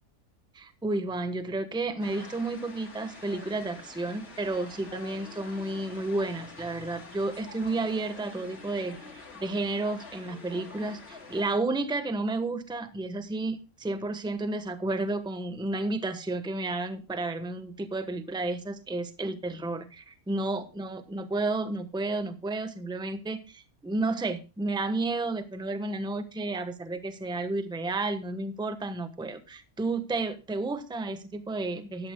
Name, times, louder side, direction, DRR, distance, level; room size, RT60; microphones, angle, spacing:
voice 1, 0.5-32.1, right 2 dB, 5° right, 9 dB, 0.9 m, -32 dB
sound 1, 2.0-11.5, left 3 dB, 70° left, 3.1 m, -47 dB
18.0 x 12.0 x 2.2 m, 0.29 s
omnidirectional pair, 1.6 m